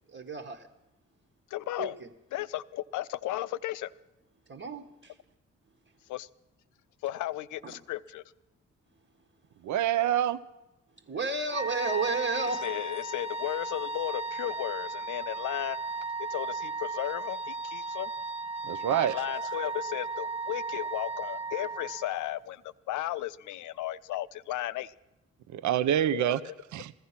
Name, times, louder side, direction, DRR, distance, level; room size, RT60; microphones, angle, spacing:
voice 1, 0.1-0.7 1.8-2.1 4.5-5.2 7.6-7.8 11.1-12.7, right 4 dB, 45° right, -1 dB, 1.3 m, -32 dB
voice 2, 1.5-2.0 2.3-3.9 6.1-6.3 7.0-8.2 12.6-15.8 16.2-18.1 18.9-24.9 26.1-26.5, left 14 dB, 90° left, 16 dB, 0.5 m, -35 dB
voice 3, 9.6-10.4 18.6-19.2 25.5-26.4 26.7-26.9, right 11 dB, 80° right, 14 dB, 0.6 m, -26 dB
Wind instrument woodwind instrument, 11.5-22.3, right 3 dB, 20° right, 0.9 m, -35 dB
15.0 x 14.0 x 5.8 m, 0.96 s
cardioid pair, 60°, 29 cm